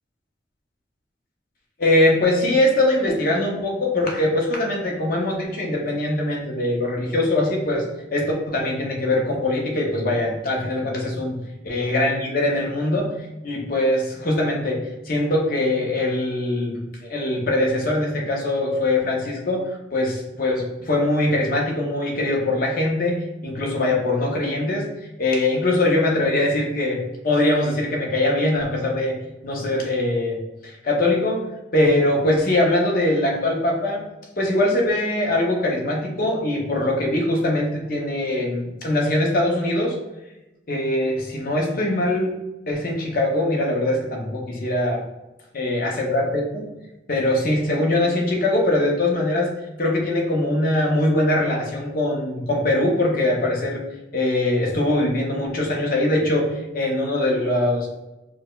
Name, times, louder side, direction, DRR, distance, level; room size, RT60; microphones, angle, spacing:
voice 1, 1.8-11.4 11.6-13.1 13.4-24.9 25.2-29.2 29.4-31.5 31.7-34.0 34.4-40.0 40.7-42.3 42.7-45.0 45.5-46.7 47.1-49.5 49.8-53.8 54.1-57.9, left 1 dB, 50° left, -1 dB, 0.7 m, -22 dB
4.6 x 2.1 x 2.3 m, 0.99 s
head